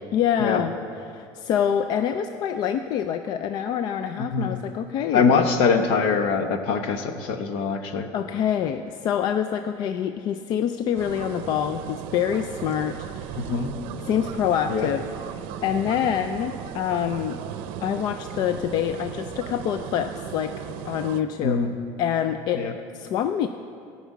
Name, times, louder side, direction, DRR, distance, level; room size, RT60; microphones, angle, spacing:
voice 1, 0.1-0.7 1.1-5.3 8.1-13.5 14.0-15.0 15.6-17.4 17.8-21.6 22.0-22.7 22.9-23.5, left 9 dB, 45° left, 9 dB, 0.4 m, -26 dB
voice 2, 4.2-4.6 5.1-8.1 13.4-13.7 14.7-14.9 21.4-21.7 22.5-22.7, left 5 dB, 65° left, 7 dB, 1.1 m, -23 dB
sound 1, 11.0-21.2, right 9 dB, 65° right, 0.6 m, -36 dB
14.5 x 6.0 x 8.3 m, 2.5 s
cardioid pair, 160°, 10 cm